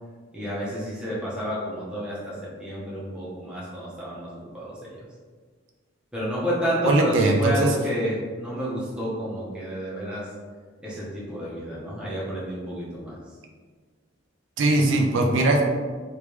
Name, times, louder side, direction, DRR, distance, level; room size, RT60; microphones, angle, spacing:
voice 1, 0.3-4.9 6.1-10.3 10.8-13.2, equal, 5° right, -8 dB, 1.0 m, -30 dB
voice 2, 6.8-7.7 14.6-15.6, right 2 dB, 75° right, 1 dB, 0.5 m, -20 dB
3.3 x 3.1 x 3.1 m, 1.5 s
head